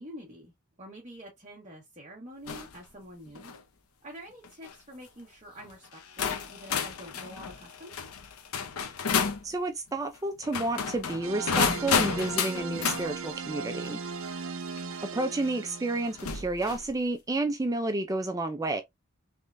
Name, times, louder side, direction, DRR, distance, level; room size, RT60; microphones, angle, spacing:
voice 1, 0.0-3.5 4.0-8.1, equal, 30° right, 1.1 m, -47 dB
sound 1, 2.5-2.8 3.3-3.6 4.4-4.7 5.6-5.7 6.2-9.4 10.4-13.0 14.8-14.9 16.2-16.9, left 6 dB, 85° left, 0.7 m, -31 dB
voice 2, 9.4-14.0 15.0-18.8, right 2 dB, 15° right, 0.4 m, -30 dB
sound 2, 11.2-16.4, right 4 dB, 65° right, 0.5 m, -37 dB
3.6 x 3.2 x 2.5 m
head